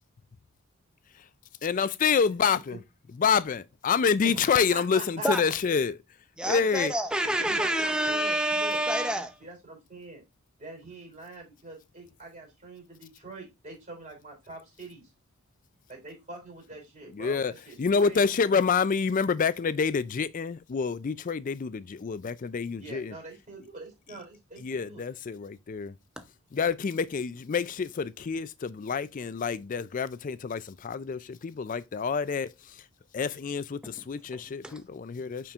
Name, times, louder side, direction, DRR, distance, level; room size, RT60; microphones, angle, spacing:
voice 1, 1.6-2.8 3.2-6.0 6.4-6.9 17.1-17.5 17.8-23.1 24.6-25.9 26.5-32.8 33.1-35.5, left 6 dB, 35° left, 0.3 m, -27 dB
voice 2, 2.5-2.8 4.2-5.5 7.4-8.8 9.4-10.2 10.6-15.0 15.9-18.3 22.8-25.0, right 2 dB, 35° right, 3.1 m, -44 dB
voice 3, 6.4-9.4 26.2-26.3 33.8-33.9 34.6-34.8, right 1 dB, 5° right, 0.6 m, -28 dB
8.7 x 4.4 x 2.5 m
head